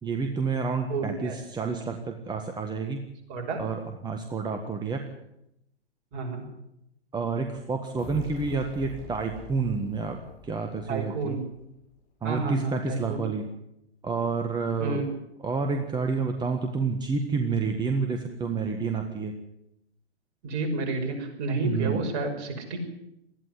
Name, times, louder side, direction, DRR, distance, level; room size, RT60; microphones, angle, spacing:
voice 1, 0.0-3.0 3.6-5.1 7.1-11.4 12.2-13.5 14.0-15.0 15.4-19.4 21.6-22.1, right 4 dB, 10° right, 5 dB, 1.7 m, -29 dB
voice 2, 0.9-1.4 3.3-3.7 6.1-6.4 10.9-11.4 12.2-13.2 14.8-15.1 20.4-22.8, right 3 dB, 40° right, 3 dB, 6.1 m, -30 dB
sound 1, 8.0-11.6, left 5 dB, 45° left, 6.8 m, -44 dB
20.0 x 14.0 x 9.9 m, 0.82 s
figure-of-eight pair, 115°, 34 cm